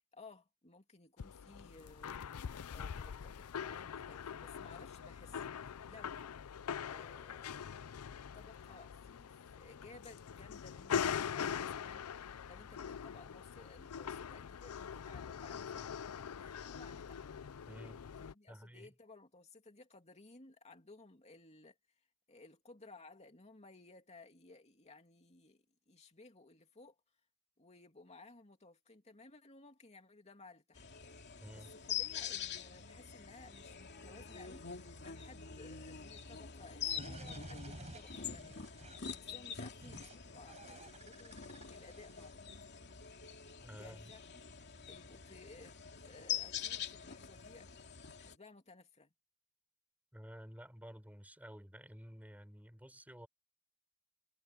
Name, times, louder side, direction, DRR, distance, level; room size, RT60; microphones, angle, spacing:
voice 1, 0.0-2.2 2.7-6.3 6.8-7.6 8.3-17.3 18.2-21.8 22.3-27.0 27.6-30.9 31.5-41.4 41.7-42.5 43.8-44.2 44.9-45.8 46.0-47.7 48.2-49.1, left 3 dB, 30° left, 2.9 m, -58 dB
sound 1, 1.2-18.3, left 7 dB, 80° left, 0.5 m, -43 dB
voice 2, 17.7-18.0 18.5-18.9 31.4-31.7 43.6-44.1 50.1-53.3, equal, 5° right, 5.6 m, -52 dB
sound 2, 30.7-48.3, left 8 dB, 50° left, 2.7 m, -45 dB
sound 3, 37.0-39.2 39.8-40.2 40.5-42.3, right 1 dB, 30° right, 5.1 m, -51 dB
head